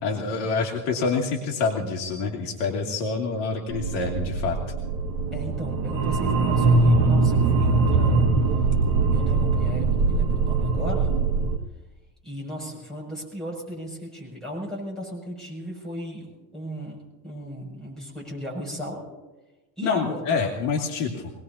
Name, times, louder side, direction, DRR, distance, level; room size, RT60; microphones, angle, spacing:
voice 1, 0.0-4.6 19.8-21.3, left 4 dB, 60° left, 0 dB, 2.5 m, -27 dB
sound 1, 3.7-11.6, right 3 dB, 55° right, 1.8 m, -22 dB
voice 2, 5.3-8.3 9.1-11.2 12.2-17.0 17.2-19.0 19.8-20.2, equal, ahead, -4 dB, 6.7 m, -36 dB
24.0 x 19.0 x 2.8 m, 1.1 s
cardioid pair, 150°, 46 cm